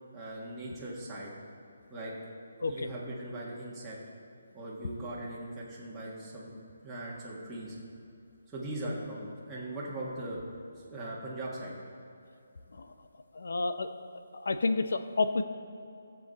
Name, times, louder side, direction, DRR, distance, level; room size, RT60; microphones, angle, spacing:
voice 1, 0.1-1.3 1.9-2.1 2.7-4.0 4.5-6.5 6.8-7.8 8.5-10.4 10.9-11.7, right 1 dB, 5° right, -9 dB, 1.6 m, -39 dB
voice 2, 13.3-13.9 14.3-15.4, left 3 dB, 80° left, 10 dB, 0.8 m, -30 dB
15.5 x 7.3 x 4.1 m, 2.7 s
hypercardioid pair, 165°, 0 cm